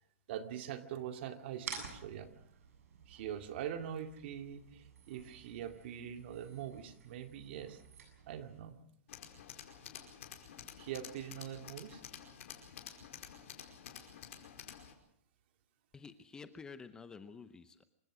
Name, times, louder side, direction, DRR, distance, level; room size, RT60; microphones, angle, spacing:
voice 1, 0.3-2.3 3.1-7.8 8.3-8.8 10.8-12.0, right 9 dB, 50° right, 6 dB, 2.4 m, -43 dB
sound 1, 1.6-8.6, right 6 dB, 80° right, 7.7 m, -51 dB
Tools, 9.1-14.9, left 9 dB, 65° left, 5.0 m, -51 dB
voice 2, 15.9-17.8, left 5 dB, 10° left, 11 dB, 0.8 m, -50 dB
27.0 x 16.5 x 6.3 m, 0.70 s
hypercardioid pair, 160°, 8 cm